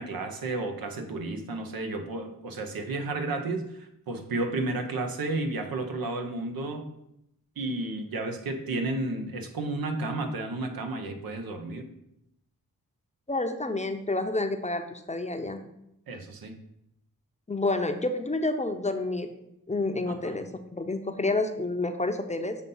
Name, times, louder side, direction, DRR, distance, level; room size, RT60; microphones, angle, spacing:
voice 1, 0.0-6.9 7.6-11.9 16.1-16.6 20.1-20.4, right 2 dB, 85° right, 5 dB, 0.9 m, -32 dB
voice 2, 13.3-15.6 17.5-19.3 19.7-22.6, left 2 dB, 20° left, 6 dB, 0.7 m, -29 dB
7.1 x 2.7 x 5.4 m, 0.80 s
cardioid pair, 50°, 34 cm